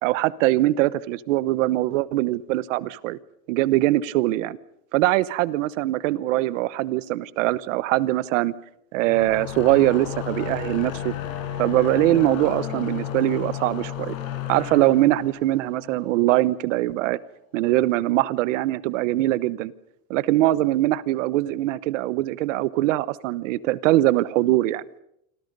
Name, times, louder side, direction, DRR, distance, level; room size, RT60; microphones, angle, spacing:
voice 1, 0.0-3.2 3.5-4.6 4.9-8.6 8.9-11.1 11.6-14.2 14.5-17.2 17.5-19.7 20.1-24.8, right 16 dB, 65° right, 18 dB, 1.1 m, -22 dB
sound 1, 9.0-16.4, left 10 dB, 85° left, 5.8 m, -33 dB
27.5 x 25.5 x 5.4 m, 0.79 s
supercardioid pair, 175°, 40 cm